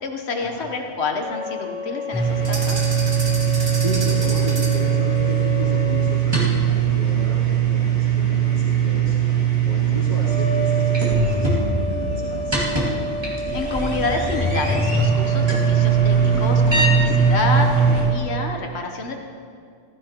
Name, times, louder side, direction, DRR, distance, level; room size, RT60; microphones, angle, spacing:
voice 1, 0.0-2.8 13.5-19.2, left 3 dB, 90° left, 3 dB, 1.3 m, -28 dB
sound 1, 1.2-6.2 10.2-18.2, equal, 85° right, 2.6 m, -30 dB
sound 2, 2.1-18.1, right 6 dB, 25° right, 2.4 m, -20 dB
sound 3, 2.4-4.9, right 2 dB, 50° right, 1.9 m, -32 dB
voice 2, 3.7-9.2 9.6-12.8, left 1 dB, 55° left, -8 dB, 3.6 m, -33 dB
15.5 x 15.0 x 3.0 m, 2.3 s
omnidirectional pair, 1.1 m